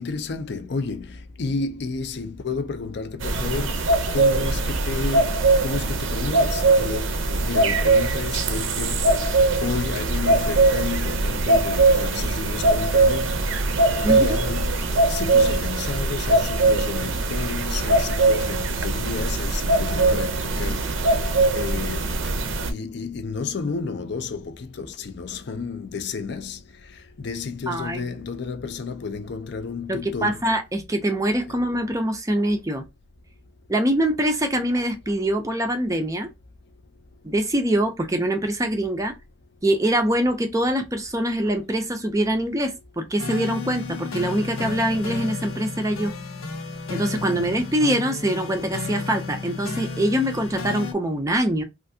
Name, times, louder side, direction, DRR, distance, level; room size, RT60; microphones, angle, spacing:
voice 1, 0.0-13.3 14.1-21.2 21.5-22.4 22.7-30.4 31.5-31.6 47.1-47.5, left 4 dB, 55° left, 0.4 m, -32 dB
sound 1, 3.2-22.7, right 2 dB, 65° right, 0.5 m, -21 dB
voice 2, 27.7-28.1 29.9-32.8 33.7-36.3 37.2-39.1 39.6-46.1 46.9-51.6, right 1 dB, 15° right, 0.4 m, -24 dB
sound 2, 43.2-50.9, left 3 dB, 85° left, 0.7 m, -32 dB
3.3 x 2.5 x 2.6 m
head